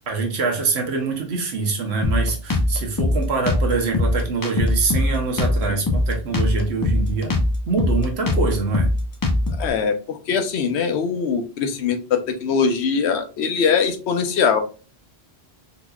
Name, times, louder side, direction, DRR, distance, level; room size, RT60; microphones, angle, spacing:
voice 1, 0.1-7.3 7.7-8.9, right 4 dB, 80° right, 2 dB, 1.1 m, -24 dB
Drum kit, 2.0-9.7, left 2 dB, 25° left, 0.5 m, -21 dB
voice 2, 9.6-14.6, left 6 dB, 85° left, 6 dB, 0.9 m, -22 dB
3.9 x 2.9 x 2.3 m, 0.35 s
omnidirectional pair, 1.1 m